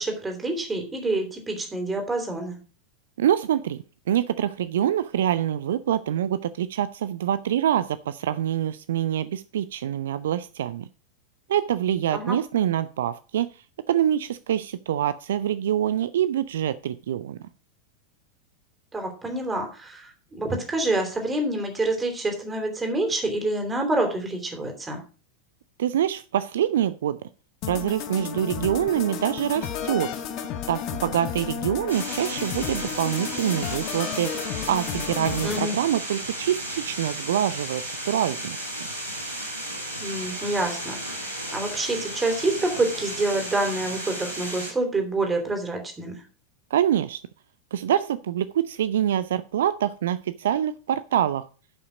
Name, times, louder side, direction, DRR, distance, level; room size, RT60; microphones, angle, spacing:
voice 1, 0.0-2.6 12.1-12.4 18.9-25.0 35.4-35.7 40.0-46.1, right 2 dB, 15° right, 4 dB, 2.9 m, -27 dB
voice 2, 3.2-10.9 11.5-17.4 25.8-27.2 27.6-30.1 30.7-34.3 34.7-38.6 46.7-47.2 47.7-51.5, right 10 dB, 60° right, 15 dB, 0.4 m, -25 dB
sound 1, 27.6-35.6, left 9 dB, 40° left, 1.1 m, -33 dB
sound 2, 31.9-44.7, right 1 dB, 80° right, 3.9 m, -34 dB
11.0 x 5.7 x 5.0 m, 0.37 s
figure-of-eight pair, 90°, 0 cm